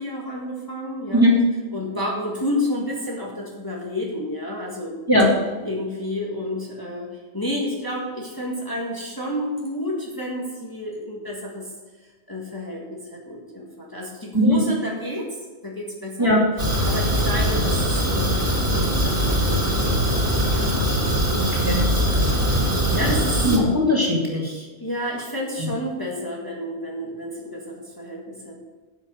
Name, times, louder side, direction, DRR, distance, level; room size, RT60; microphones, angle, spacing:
voice 1, 0.0-1.2 1.7-4.9 5.6-11.7 12.3-15.3 15.6-16.3 16.8-19.5 19.8-23.5 24.8-28.6, left 1 dB, 20° left, -3 dB, 1.9 m, -30 dB
Fire, 16.6-23.6, equal, 85° right, 3.7 m, -21 dB
voice 2, 21.5-21.8 23.4-24.6 25.6-25.7, left 1 dB, 20° right, -4 dB, 2.5 m, -19 dB
10.0 x 7.5 x 6.4 m, 1.3 s
omnidirectional pair, 1.1 m